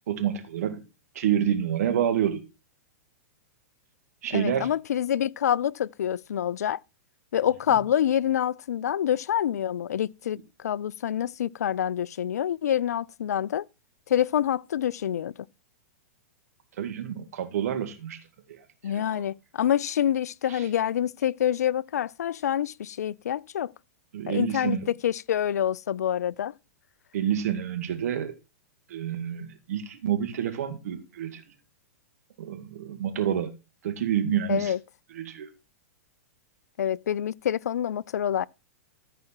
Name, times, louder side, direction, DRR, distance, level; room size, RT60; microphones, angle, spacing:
voice 1, 0.1-0.8 1.1-2.4 4.2-4.7 7.7-7.8 16.8-18.2 18.5-18.6 18.9-19.2 20.5-20.7 24.1-24.9 27.1-28.3 28.9-31.4 32.4-33.5 33.8-34.7 35.1-35.5, right 9 dB, 70° right, 2.1 m, -28 dB
voice 2, 4.3-6.8 7.3-13.6 14.1-15.3 18.8-23.7 24.3-24.8 25.0-26.5 34.5-34.8 36.8-38.4, left 10 dB, 80° left, 0.4 m, -26 dB
14.0 x 4.9 x 4.5 m
hypercardioid pair, 115°, 9 cm